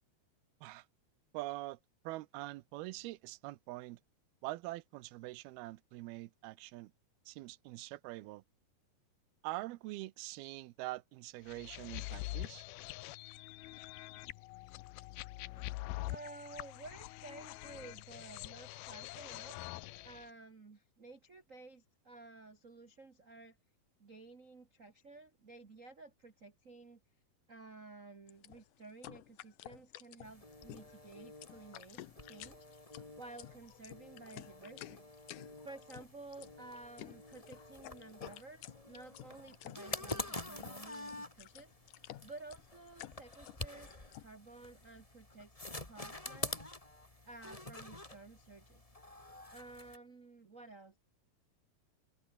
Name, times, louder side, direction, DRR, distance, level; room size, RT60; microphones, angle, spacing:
voice 1, 1.3-4.0 4.4-6.9 7.3-8.4 9.4-12.6, right 19 dB, 85° right, 2.8 m, -44 dB
sound 1, 11.5-20.3, left 19 dB, 90° left, 2.6 m, -45 dB
voice 2, 16.1-23.6 24.0-27.0 27.5-32.7 33.1-35.1 35.6-41.7 42.2-45.5 45.8-46.7 47.2-48.8 49.5-51.0, right 3 dB, 40° right, 1.1 m, -53 dB
sound 2, 28.3-44.3, left 14 dB, 70° left, 2.3 m, -52 dB
sound 3, 30.2-50.0, left 2 dB, 10° left, 2.3 m, -48 dB
open air
omnidirectional pair, 4.4 m